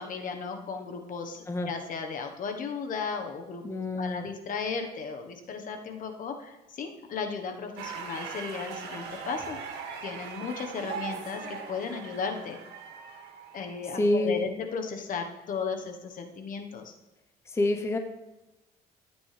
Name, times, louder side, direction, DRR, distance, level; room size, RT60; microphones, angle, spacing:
voice 1, 0.0-3.6 4.0-9.6 10.0-12.6 13.5-16.9, left 5 dB, 50° left, 5 dB, 1.2 m, -35 dB
voice 2, 3.6-4.3 13.9-14.4 17.5-18.0, left 1 dB, 15° left, 5 dB, 0.8 m, -27 dB
sound 1, 7.8-13.9, right 6 dB, 80° right, 2.1 m, -40 dB
13.5 x 8.6 x 3.4 m, 1.0 s
cardioid pair, 110°, 17 cm